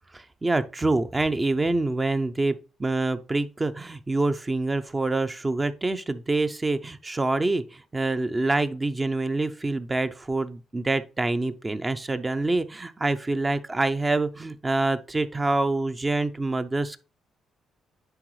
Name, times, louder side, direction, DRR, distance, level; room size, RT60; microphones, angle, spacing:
voice 1, 0.1-17.0, right 2 dB, 20° right, 0.5 m, -26 dB
9.9 x 3.9 x 3.2 m
cardioid pair, 90°, 0 cm